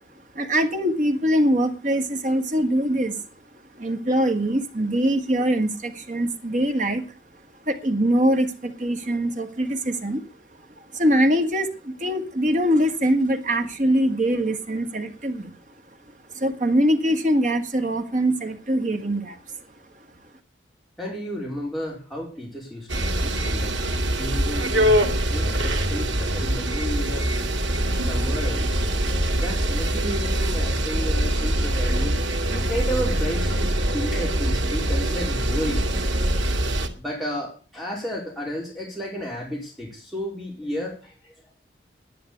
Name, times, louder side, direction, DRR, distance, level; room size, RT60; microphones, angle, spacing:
voice 1, 0.3-3.3 3.8-7.1 7.7-10.3 10.8-15.6 16.1-19.6, equal, 40° right, 6 dB, 1.8 m, -23 dB
voice 2, 21.0-22.9 23.1-23.8 24.2-25.0 25.3-27.3 27.9-28.8 29.4-32.2 32.5-35.8 37.0-41.3, equal, ahead, -2 dB, 4.5 m, -32 dB
sound 1, 22.9-36.9, right 1 dB, 85° right, 2.1 m, -23 dB
10.5 x 10.0 x 8.1 m, 0.37 s
head